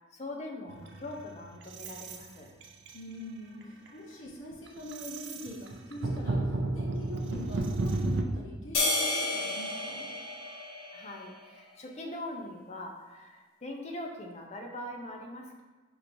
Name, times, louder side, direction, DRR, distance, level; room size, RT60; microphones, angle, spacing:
voice 1, 0.1-2.5 10.9-15.6, left 1 dB, 30° left, 2 dB, 0.5 m, -42 dB
sound 1, 0.7-2.3 2.6-3.1 3.6-3.9 4.3-8.2, right 2 dB, 55° right, 0.4 m, -32 dB
voice 2, 2.9-6.5 6.7-10.1, equal, 70° left, -3 dB, 0.9 m, -43 dB
sound 2, 8.7-11.4, left 2 dB, 90° left, 1.2 m, -31 dB
6.5 x 3.0 x 2.6 m, 1.3 s
head